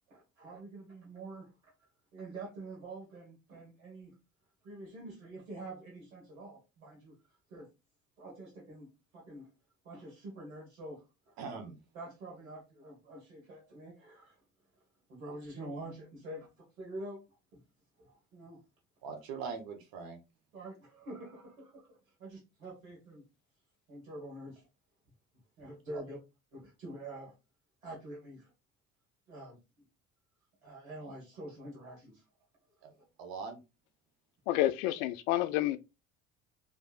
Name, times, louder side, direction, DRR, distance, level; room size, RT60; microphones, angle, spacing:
voice 1, 0.1-1.5 2.1-4.2 4.6-7.1 7.5-7.7 8.2-9.5 9.8-11.4 11.9-14.4 15.1-17.2 17.5-17.6 18.0-18.6 20.5-23.2 23.9-24.7 25.6-26.2 26.5-27.3 27.8-28.5 29.3-29.6 30.6-32.2, right 2 dB, 85° right, 1.7 m, -46 dB
voice 2, 11.4-11.8 19.0-20.2 25.9-26.0 32.8-32.9 33.2-33.6, right 5 dB, 60° right, 1.3 m, -41 dB
voice 3, 34.5-35.8, left 15 dB, 75° left, 0.5 m, -29 dB
3.5 x 3.4 x 2.4 m
hypercardioid pair, 65°, 40 cm